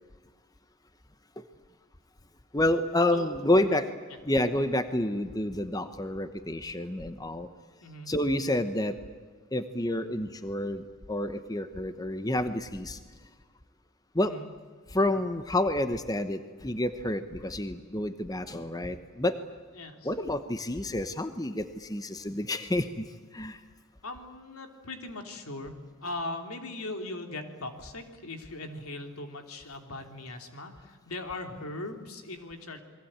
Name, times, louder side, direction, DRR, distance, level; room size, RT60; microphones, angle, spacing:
voice 1, 2.5-3.9 4.2-7.5 8.1-9.0 9.5-13.0 14.1-14.4 14.9-19.4 20.0-23.6, left 1 dB, 15° left, 10 dB, 1.0 m, -29 dB
voice 2, 3.1-3.8 7.8-8.1 14.2-14.5 19.7-20.1 24.0-32.8, left 2 dB, 90° left, 5 dB, 3.1 m, -40 dB
29.0 x 22.0 x 8.9 m, 1.5 s
head